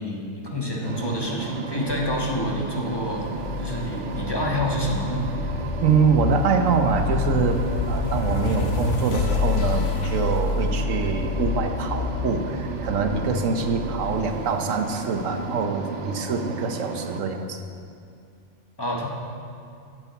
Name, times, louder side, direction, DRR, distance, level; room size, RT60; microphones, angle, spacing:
voice 1, 0.0-3.2 3.6-5.3 18.8-19.1, equal, 20° left, -2 dB, 1.3 m, -28 dB
sound 1, 0.8-17.2, right 4 dB, 65° right, 1.1 m, -34 dB
sound 2, 1.9-15.1, left 5 dB, 70° left, 1.1 m, -29 dB
voice 2, 5.8-17.6, right 5 dB, 90° right, 6 dB, 1.2 m, -24 dB
10.0 x 7.6 x 7.0 m, 2.4 s
omnidirectional pair, 1.3 m